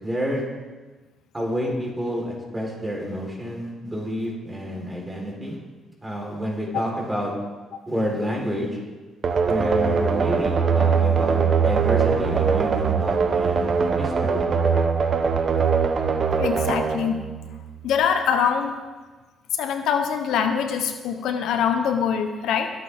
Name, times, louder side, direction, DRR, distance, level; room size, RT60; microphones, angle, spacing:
voice 1, 0.0-0.4 1.3-5.6 6.0-7.3 7.9-8.7 9.5-14.4, equal, 15° right, -2 dB, 4.2 m, -29 dB
sound 1, 9.2-17.9, right 6 dB, 50° right, 1.2 m, -22 dB
voice 2, 16.4-17.2 17.8-18.8 19.6-22.7, left 7 dB, 85° left, 6 dB, 1.0 m, -23 dB
22.0 x 8.3 x 3.6 m, 1.3 s
cardioid pair, 90°, 0 cm